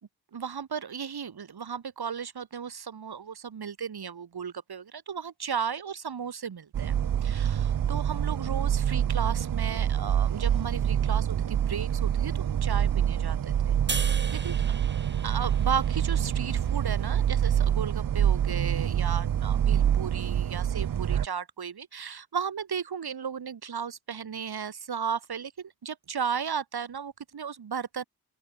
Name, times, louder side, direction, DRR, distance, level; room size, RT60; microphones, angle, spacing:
voice 1, 0.3-6.9 7.2-14.8 15.2-28.0, right 7 dB, 75° right, 3.8 m, -35 dB
sound 1, 6.7-21.3, right 9 dB, 60° right, 0.7 m, -26 dB
sound 2, 13.9-17.2, right 4 dB, 30° right, 2.0 m, -38 dB
open air
wide cardioid pair, 150°, 38 cm